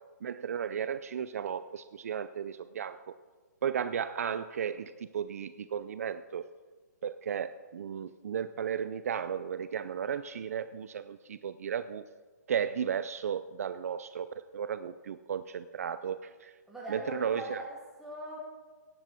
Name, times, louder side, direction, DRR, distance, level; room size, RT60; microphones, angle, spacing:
voice 1, 0.2-3.1 3.6-6.4 7.0-12.0 12.5-16.5 16.9-17.6, right 8 dB, 55° right, 13 dB, 0.4 m, -34 dB
voice 2, 16.7-18.4, equal, ahead, -6 dB, 2.8 m, -41 dB
17.5 x 8.4 x 4.4 m, 1.4 s
hypercardioid pair, 165°, 10 cm